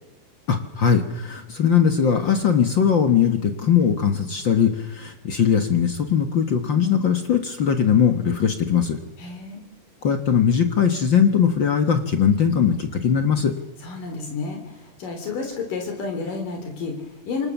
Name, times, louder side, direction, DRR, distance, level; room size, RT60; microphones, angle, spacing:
voice 1, 0.5-9.0 10.0-13.5, left 7 dB, 50° left, 7 dB, 1.4 m, -20 dB
voice 2, 9.2-9.6 13.8-17.5, left 4 dB, 70° left, 4 dB, 4.9 m, -31 dB
27.0 x 24.5 x 7.1 m, 0.99 s
omnidirectional pair, 4.0 m